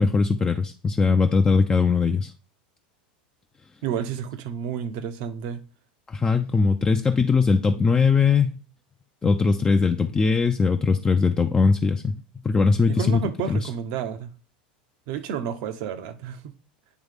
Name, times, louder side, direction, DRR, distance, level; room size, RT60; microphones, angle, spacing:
voice 1, 0.0-2.3 6.1-8.6 9.2-13.2 13.5-13.7, left 4 dB, 20° left, 0.4 m, -20 dB
voice 2, 3.8-5.7 12.9-14.3 15.1-16.5, right 8 dB, 60° right, 0.8 m, -30 dB
9.4 x 3.2 x 3.5 m
hypercardioid pair, 105°, 5 cm